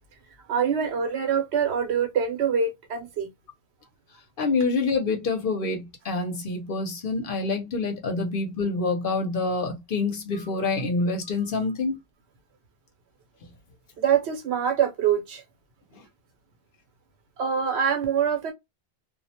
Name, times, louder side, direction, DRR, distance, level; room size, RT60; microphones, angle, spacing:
voice 1, 0.5-3.3 14.0-15.4 17.4-18.5, right 7 dB, 90° right, 1.0 m, -24 dB
voice 2, 4.4-12.0 15.9-16.0, left 3 dB, 60° left, 0.9 m, -27 dB
2.4 x 2.1 x 2.8 m
omnidirectional pair, 1.1 m